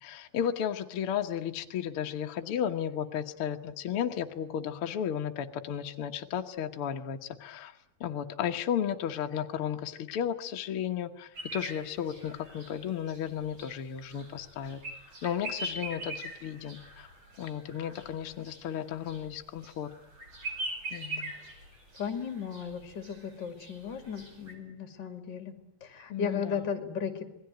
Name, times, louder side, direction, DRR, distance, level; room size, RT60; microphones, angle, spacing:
voice 1, 0.0-7.7 8.0-14.8 15.2-17.1 17.4-19.9 20.9-21.3 26.1-26.6, left 9 dB, 70° left, 4 dB, 1.3 m, -34 dB
sound 1, 11.3-24.5, right 2 dB, 30° right, 5.8 m, -42 dB
voice 2, 22.0-27.3, left 7 dB, 30° left, 6 dB, 2.6 m, -36 dB
27.5 x 20.5 x 9.2 m, 0.80 s
omnidirectional pair, 4.4 m